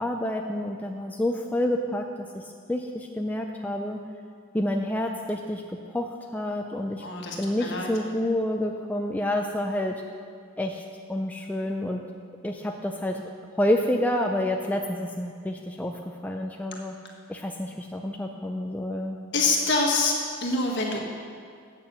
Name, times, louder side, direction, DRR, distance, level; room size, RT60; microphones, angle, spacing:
voice 1, 0.0-2.1 2.3-4.0 4.5-5.6 5.9-7.1 7.4-10.0 10.6-10.8 11.1-12.0 12.4-13.2 13.6-17.0 17.3-19.2, left 1 dB, 10° left, 2 dB, 0.4 m, -28 dB
voice 2, 7.0-7.9 19.3-20.1 20.4-21.0, left 3 dB, 55° left, -1 dB, 1.6 m, -25 dB
8.5 x 6.7 x 7.1 m, 2.1 s
head